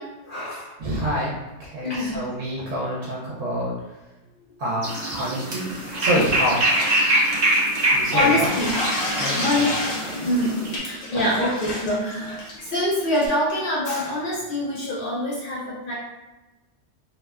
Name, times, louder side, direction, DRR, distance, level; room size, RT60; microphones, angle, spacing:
voice 1, 0.0-0.7 1.8-2.2 8.1-8.7 9.4-15.9, left 1 dB, 60° left, -6 dB, 0.6 m, -25 dB
voice 2, 0.8-1.3 1.6-3.7 4.6-5.7 6.0-6.6 7.9-8.5 9.2-9.6 11.1-11.2, right 1 dB, 85° right, -6 dB, 1.0 m, -27 dB
sound 1, 4.8-10.8, right 1 dB, 50° right, 0.5 m, -24 dB
sound 2, 5.7-7.9 8.2-13.3, left 1 dB, 90° left, 1.1 m, -31 dB
2.7 x 2.1 x 2.3 m, 1.1 s
omnidirectional pair, 1.3 m